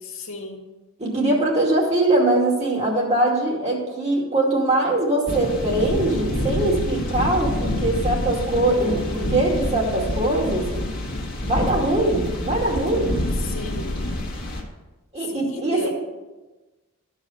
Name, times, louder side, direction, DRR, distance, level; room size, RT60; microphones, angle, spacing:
voice 1, 0.0-0.6 13.4-14.0 15.3-15.9, left 2 dB, 65° left, 0 dB, 1.8 m, -33 dB
voice 2, 1.0-10.7 11.4-13.1 15.1-15.9, right 2 dB, 30° right, -3 dB, 2.4 m, -22 dB
sound 1, 5.3-14.6, left 1 dB, 45° left, 1.7 m, -27 dB
13.0 x 4.9 x 5.7 m, 1.2 s
head